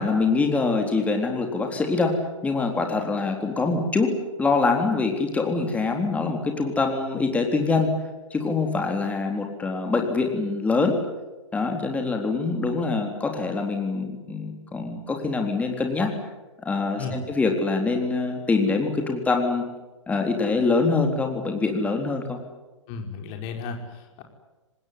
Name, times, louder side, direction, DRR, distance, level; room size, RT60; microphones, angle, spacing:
voice 1, 0.0-4.1 4.4-7.9 8.3-11.0 11.5-16.1 16.6-19.6 20.1-22.4, left 3 dB, 10° left, 3 dB, 3.7 m, -24 dB
voice 2, 22.9-24.2, left 4 dB, 30° left, 4 dB, 4.7 m, -34 dB
26.0 x 20.0 x 9.7 m, 1.1 s
figure-of-eight pair, 120°, 16 cm